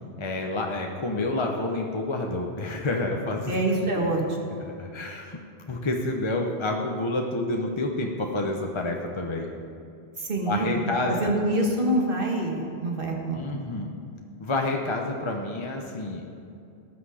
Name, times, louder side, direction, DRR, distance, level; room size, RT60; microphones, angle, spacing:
voice 1, 0.2-3.5 3.9-4.1 4.7-5.4 5.7-9.5 10.5-11.3 13.3-13.9 14.4-16.3, left 2 dB, 30° left, 1 dB, 0.8 m, -29 dB
voice 2, 3.5-4.2 10.2-13.5, right 1 dB, 55° right, 0 dB, 1.7 m, -26 dB
18.5 x 6.2 x 4.9 m, 2.6 s
omnidirectional pair, 1.1 m